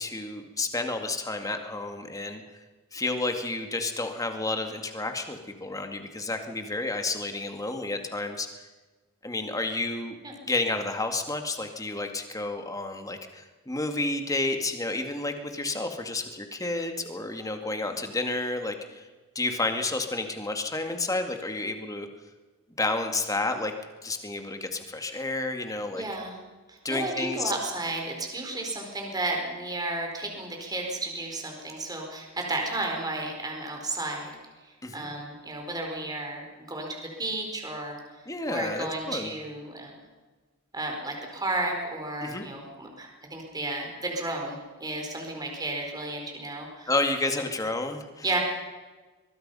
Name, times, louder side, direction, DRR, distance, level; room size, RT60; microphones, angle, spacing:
voice 1, 0.0-2.4 2.9-8.7 9.2-10.2 10.5-19.1 19.4-22.1 22.8-23.7 24.0-26.0 26.8-27.5 34.8-35.1 38.3-39.3 42.2-42.5 46.9-48.4, left 2 dB, 15° left, 5 dB, 2.1 m, -30 dB
voice 2, 25.9-26.4 26.7-34.3 34.9-38.0 38.5-40.0 40.7-46.9 48.2-48.4, right 2 dB, 20° right, 1 dB, 4.4 m, -33 dB
23.5 x 21.0 x 5.6 m, 1.3 s
head